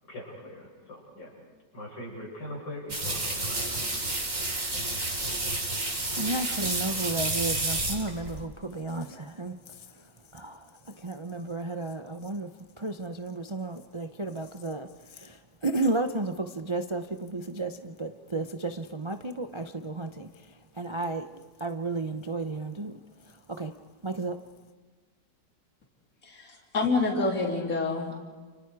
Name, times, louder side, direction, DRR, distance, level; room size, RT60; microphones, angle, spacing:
voice 1, 0.0-1.4 1.7-4.0, left 1 dB, 85° left, -3 dB, 8.3 m, -42 dB
sound 1, 2.9-8.4, right 2 dB, 45° right, 4.2 m, -30 dB
voice 2, 6.2-10.0 10.3-12.5 12.8-23.0 23.5-23.7 24.0-24.4, right 2 dB, 30° right, 7 dB, 0.5 m, -33 dB
voice 3, 26.2-28.2, left 3 dB, 50° left, -1 dB, 3.7 m, -27 dB
30.0 x 29.5 x 4.9 m, 1.4 s
omnidirectional pair, 1.9 m